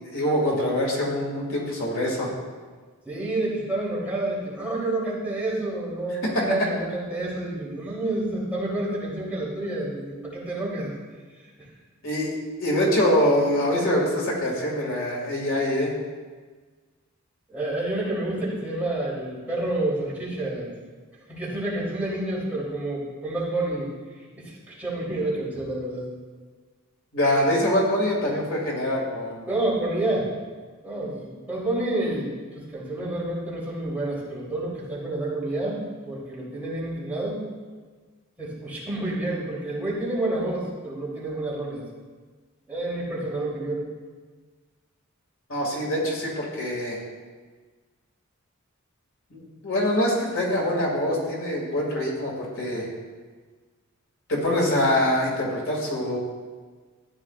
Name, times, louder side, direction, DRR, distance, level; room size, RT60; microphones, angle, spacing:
voice 1, 0.0-2.3 6.2-6.5 12.0-15.9 27.1-29.5 45.5-47.0 49.3-52.9 54.3-56.2, left 1 dB, 65° left, -3 dB, 2.3 m, -24 dB
voice 2, 3.0-10.9 11.6-11.7 17.5-20.7 21.3-23.9 24.4-26.1 29.5-30.3 30.8-37.5 38.4-41.8 42.7-43.8, right 2 dB, 10° right, -8 dB, 3.2 m, -29 dB
14.0 x 9.4 x 2.4 m, 1.5 s
head